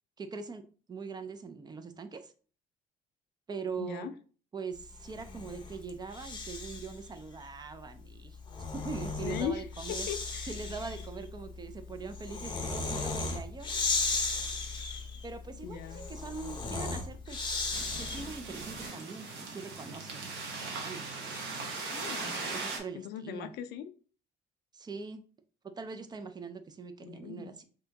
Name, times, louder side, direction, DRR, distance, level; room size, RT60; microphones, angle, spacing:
voice 1, 0.2-0.6 0.9-2.3 3.5-4.1 4.5-8.4 8.7-10.1 10.4-13.7 15.2-17.6 17.9-21.4 22.5-23.5 24.7-25.2 25.6-27.6, right 5 dB, 25° right, 9 dB, 0.4 m, -42 dB
voice 2, 3.8-4.1 9.2-9.7 10.1-10.5 15.6-16.0 21.9-22.4 22.9-23.9 27.0-27.5, left 9 dB, 75° left, 11 dB, 0.4 m, -39 dB
Breathing, 5.0-7.0 8.2-18.5, left 3 dB, 25° left, 0.7 m, -36 dB
sound 1, 17.7-22.8, right 3 dB, 70° right, 0.9 m, -39 dB
2.8 x 2.6 x 3.3 m, 0.40 s
cardioid pair, 110°, 17 cm